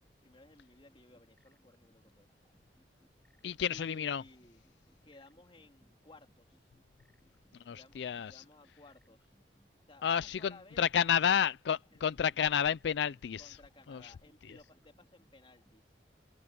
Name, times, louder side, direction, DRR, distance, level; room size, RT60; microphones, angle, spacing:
voice 1, 0.2-2.3 3.7-4.6 5.0-6.7 7.7-8.0 8.3-9.3 9.9-11.5 11.9-12.0 13.4-15.8, left 2 dB, 30° left, 3.2 m, -58 dB
sound 1, 0.9-15.7, equal, 5° left, 6.7 m, -69 dB
voice 2, 3.4-4.2 7.7-8.4 10.0-13.6 13.9-14.1 14.5-14.6, left 8 dB, 70° left, 0.4 m, -31 dB
head